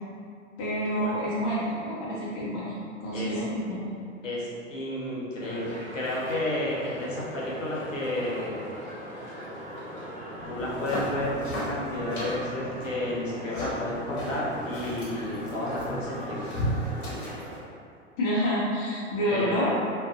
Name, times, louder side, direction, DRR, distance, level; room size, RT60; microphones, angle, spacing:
voice 1, 0.6-2.7 3.0-4.0 18.2-19.7, equal, 25° left, -8 dB, 0.4 m, -28 dB
voice 2, 4.2-8.6 10.5-16.5 19.3-19.7, left 1 dB, 80° left, -6 dB, 0.7 m, -31 dB
sound 1, 5.4-17.6, equal, 20° right, 0.9 m, -40 dB
sound 2, 10.4-16.8, equal, 80° right, 0.8 m, -43 dB
sound 3, 10.6-17.6, equal, 40° left, 0.9 m, -35 dB
2.4 x 2.2 x 2.3 m, 2.4 s
figure-of-eight pair, 95°, 38 cm